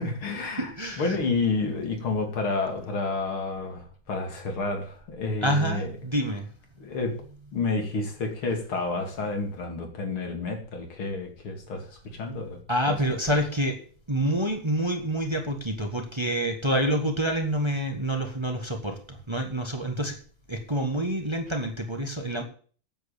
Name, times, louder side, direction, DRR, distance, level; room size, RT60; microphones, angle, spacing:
voice 1, 0.0-0.7 1.0-5.9 6.8-7.2 7.5-12.6 12.9-13.0 13.3-13.4, left 3 dB, 90° left, 3 dB, 3.4 m, -30 dB
voice 2, 0.6-1.2 5.4-6.5 12.7-13.8 14.1-20.2 20.5-22.4, right 1 dB, 15° right, 4 dB, 1.5 m, -27 dB
9.3 x 7.8 x 8.6 m, 0.44 s
omnidirectional pair, 2.2 m